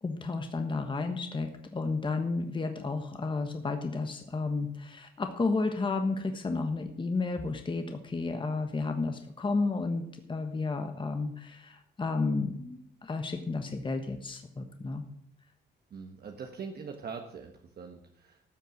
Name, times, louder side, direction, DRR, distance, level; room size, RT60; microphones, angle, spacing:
voice 1, 0.0-10.0 10.3-15.0, left 3 dB, 25° left, 6 dB, 1.3 m, -32 dB
voice 2, 15.9-18.4, right 5 dB, 55° right, 3 dB, 1.4 m, -42 dB
13.0 x 6.7 x 7.7 m, 0.71 s
cardioid pair, 90°, 20 cm